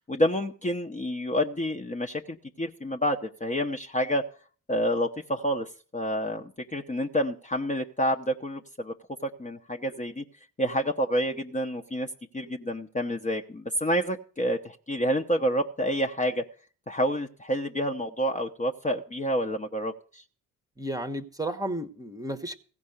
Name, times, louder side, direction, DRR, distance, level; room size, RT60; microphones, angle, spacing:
voice 1, 0.0-4.2 4.7-8.9 9.2-10.2 10.6-12.1 12.3-16.4 16.9-20.2, equal, 20° left, 0.9 m, -28 dB
voice 2, 20.8-22.6, right 1 dB, 10° right, 1.0 m, -33 dB
16.0 x 5.3 x 8.0 m
figure-of-eight pair, 40°, 41 cm